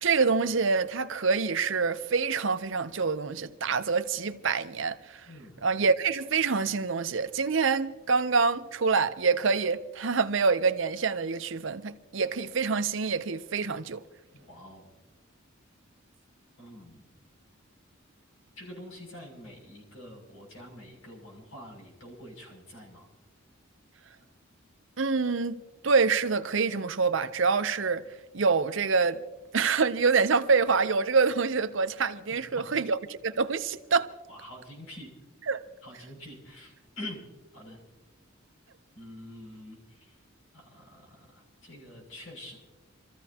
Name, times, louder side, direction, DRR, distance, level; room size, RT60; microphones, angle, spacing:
voice 1, 0.0-5.2 5.6-14.0 25.0-25.6 25.8-28.0 28.3-29.2 29.5-34.1 35.5-35.6, right 5 dB, 65° right, 0.7 m, -26 dB
voice 2, 5.2-5.6 14.3-14.9 16.6-17.1 18.6-23.1 32.6-32.8 34.3-35.1 35.8-37.2 37.5-37.8 39.0-40.2 40.5-42.6, left 1 dB, 80° left, 6.7 m, -46 dB
27.0 x 14.5 x 2.9 m
head